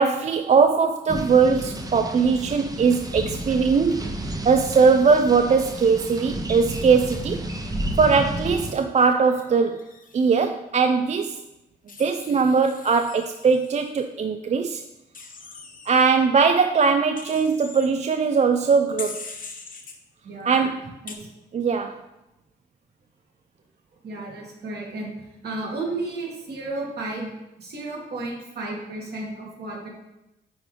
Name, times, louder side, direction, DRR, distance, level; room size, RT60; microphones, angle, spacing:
voice 1, 0.0-7.4 8.0-9.8 10.1-11.4 12.0-14.8 15.9-19.3 20.4-20.9 21.5-22.0, right 5 dB, 40° right, 7 dB, 0.4 m, -20 dB
sound 1, 1.1-8.7, right 1 dB, 20° right, 0.7 m, -31 dB
Wild animals, 8.9-10.5 11.9-13.9 15.1-15.9 17.2-17.9 19.0-19.9 21.1-21.2, left 4 dB, 50° left, 0.9 m, -41 dB
voice 2, 20.2-20.7 21.0-21.3 24.0-25.1 25.4-29.9, right 2 dB, 65° right, -2 dB, 2.0 m, -33 dB
9.2 x 3.8 x 3.3 m, 0.93 s
cardioid pair, 75°, 18 cm